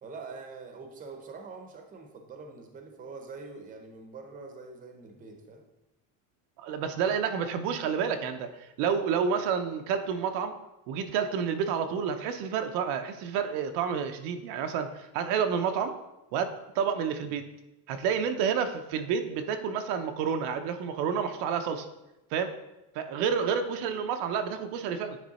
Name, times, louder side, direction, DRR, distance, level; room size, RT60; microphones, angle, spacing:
voice 1, 0.0-5.6 17.2-17.3, right 4 dB, 20° right, 4 dB, 0.7 m, -44 dB
voice 2, 6.6-8.5 8.8-10.5 10.9-15.9 16.3-17.4 17.9-21.9 22.3-22.5 22.9-25.2, right 7 dB, 85° right, 7 dB, 0.8 m, -29 dB
9.3 x 3.3 x 4.1 m, 0.95 s
cardioid pair, 165°, 39 cm